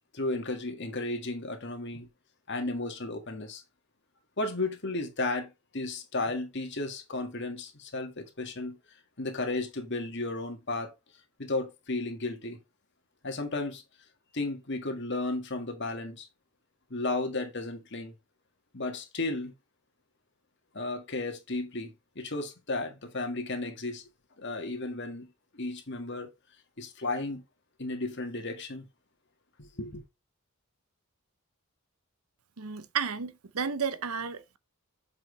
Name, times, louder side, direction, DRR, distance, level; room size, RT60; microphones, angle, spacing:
voice 1, 0.1-2.1 2.5-3.6 4.4-8.8 9.2-10.9 11.4-12.6 13.2-13.8 14.3-16.3 16.9-18.1 18.7-19.5 20.7-24.0 24.4-25.3 25.5-26.3 26.8-27.4 27.8-28.9 29.6-30.0, left 2 dB, 55° left, 1.9 m, -34 dB
voice 2, 32.6-34.6, right 6 dB, 85° right, 0.8 m, -32 dB
7.7 x 5.7 x 3.2 m
head